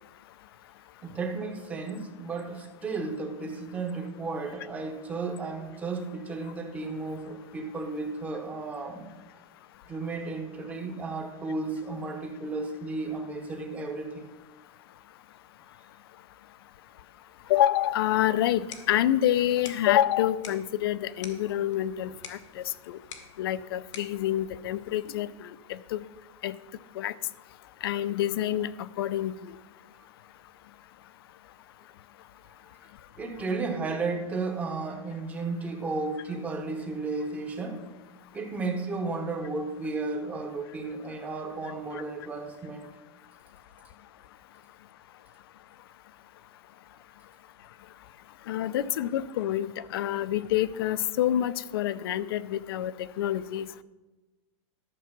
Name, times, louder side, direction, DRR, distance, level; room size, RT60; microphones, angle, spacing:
voice 1, 1.0-9.1 9.9-14.3 33.2-37.8 38.3-42.9, right 3 dB, 10° right, 4 dB, 0.9 m, -33 dB
voice 2, 17.5-23.0 23.4-26.0 26.4-26.5 27.0-27.1 27.8-29.3 48.5-52.9 53.2-53.8, left 12 dB, 55° left, 17 dB, 0.5 m, -27 dB
sound 1, 18.4-25.4, left 6 dB, 85° left, 1.9 m, -49 dB
12.0 x 7.0 x 6.0 m, 1.1 s
supercardioid pair, 175°, 15 cm